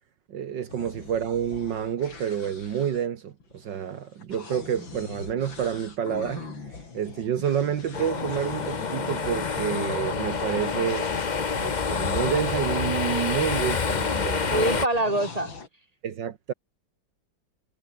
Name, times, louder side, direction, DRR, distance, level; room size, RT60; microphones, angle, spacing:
voice 1, 0.3-11.1 11.6-14.8 16.0-16.5, right 9 dB, 65° right, 1.9 m, -29 dB
sound 1, 0.7-12.8 13.6-15.7, left 4 dB, 80° left, 4.3 m, -42 dB
sound 2, 7.9-14.9, left 5 dB, 35° left, 0.8 m, -28 dB
voice 2, 14.5-15.5, right 1 dB, 20° right, 3.3 m, -25 dB
omnidirectional pair, 2.1 m